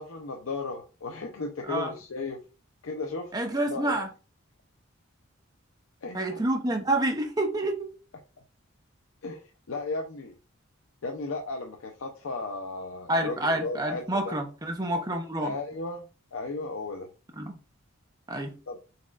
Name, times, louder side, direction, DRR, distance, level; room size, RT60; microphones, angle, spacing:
voice 1, 0.0-2.4 2.8-3.3 3.7-4.0 6.0-6.4 9.2-9.4 9.7-10.4 11.0-14.4 15.4-16.0 16.3-17.1 18.7-18.8, left 3 dB, 80° left, 0.6 m, -35 dB
voice 2, 3.3-4.1 6.1-7.9 13.1-15.5 17.4-17.6 18.3-18.5, right 1 dB, 20° right, 0.7 m, -28 dB
4.1 x 4.1 x 2.4 m
head